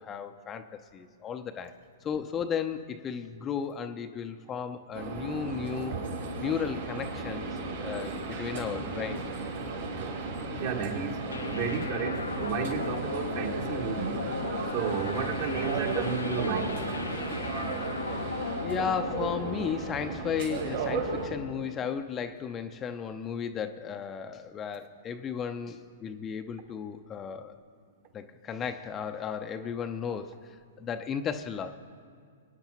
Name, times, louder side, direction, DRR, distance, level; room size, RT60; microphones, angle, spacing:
voice 1, 0.0-1.7 2.0-6.0 6.4-7.5 7.8-9.3 17.8-18.1 18.6-27.5 28.1-31.7, left 7 dB, 25° left, 8 dB, 0.6 m, -34 dB
sound 1, 4.9-21.3, right 3 dB, 70° right, 3.7 m, -35 dB
voice 2, 10.6-14.2 14.7-16.8, right 6 dB, 50° right, 1 dB, 2.0 m, -32 dB
sound 2, 11.3-20.7, left 4 dB, 80° left, 0.6 m, -38 dB
24.0 x 9.6 x 3.0 m, 2.2 s
figure-of-eight pair, 110°, 0 cm